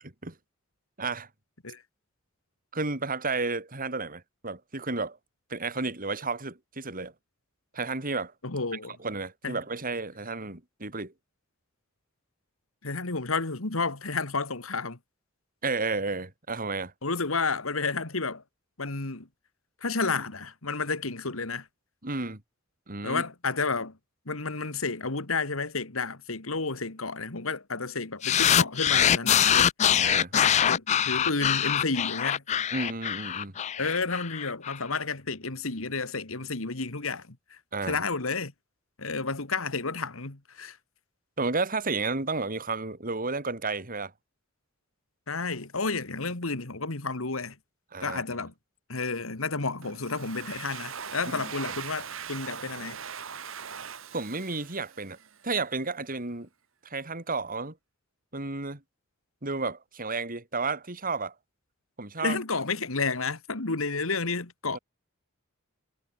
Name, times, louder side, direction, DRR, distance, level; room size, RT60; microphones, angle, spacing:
voice 1, 1.0-1.3 2.7-5.2 5.5-7.1 7.7-8.3 9.0-11.1 15.6-16.9 22.0-22.4 22.9-23.2 29.9-30.3 32.7-33.5 37.7-38.0 41.4-44.1 47.9-48.2 51.4-51.5 54.1-55.2 55.4-56.5 56.8-57.8 58.3-58.8 59.4-61.3 62.0-62.4 64.7-64.8, right 3 dB, 45° right, 3.8 m, -32 dB
voice 2, 8.4-9.0 9.4-9.6 12.8-15.0 17.0-18.4 18.8-19.3 19.8-21.7 23.0-24.0 24.3-30.0 30.3-32.4 33.8-38.5 39.0-40.8 45.3-47.6 48.0-48.5 48.9-53.0 62.2-64.8, left 4 dB, 85° left, 2.3 m, -31 dB
sound 1, 28.2-34.8, left 9 dB, 35° left, 0.3 m, -24 dB
Domestic sounds home sounds, 49.8-55.4, right 7 dB, 70° right, 1.9 m, -40 dB
head